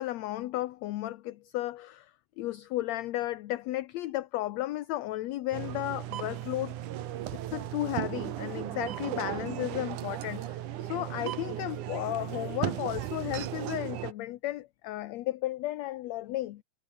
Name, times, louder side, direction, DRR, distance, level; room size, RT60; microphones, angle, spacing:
voice 1, 0.0-2.1 2.4-6.7 7.5-16.6, left 15 dB, 70° left, 1.8 m, -34 dB
sound 1, 5.5-14.1, right 13 dB, 75° right, 2.7 m, -36 dB
omnidirectional pair, 3.7 m